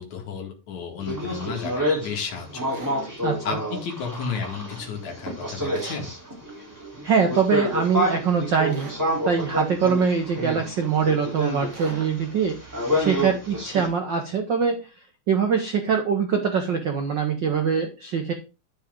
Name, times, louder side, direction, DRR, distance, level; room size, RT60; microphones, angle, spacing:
voice 1, 0.0-2.8 3.4-6.1, left 6 dB, 60° left, 2 dB, 3.2 m, -33 dB
sound 1, 1.0-13.9, equal, 5° right, 3.3 m, -29 dB
sound 2, 2.7-3.0 5.7-6.1 8.7-9.0 11.7-12.0, right 4 dB, 40° right, 2.7 m, -42 dB
voice 2, 7.0-8.9 9.3-12.6 13.0-14.8 15.3-18.3, right 6 dB, 80° right, 4 dB, 1.0 m, -23 dB
10.0 x 6.5 x 3.8 m, 0.30 s
omnidirectional pair, 3.8 m